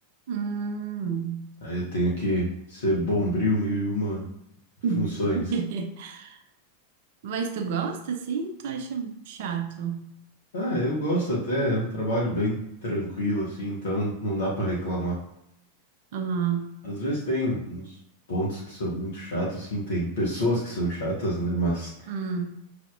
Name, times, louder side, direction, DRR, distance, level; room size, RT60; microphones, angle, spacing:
voice 1, 0.3-1.5 2.3-2.4 4.8-6.4 7.2-10.1 16.1-16.7 22.1-22.6, right 6 dB, 50° right, 7 dB, 0.5 m, -30 dB
voice 2, 1.6-4.3 4.9-5.4 10.5-15.2 16.8-17.9 18.3-22.1, equal, 60° left, -5 dB, 1.1 m, -27 dB
5.8 x 3.4 x 2.4 m, 0.80 s
figure-of-eight pair, 90°, 0 cm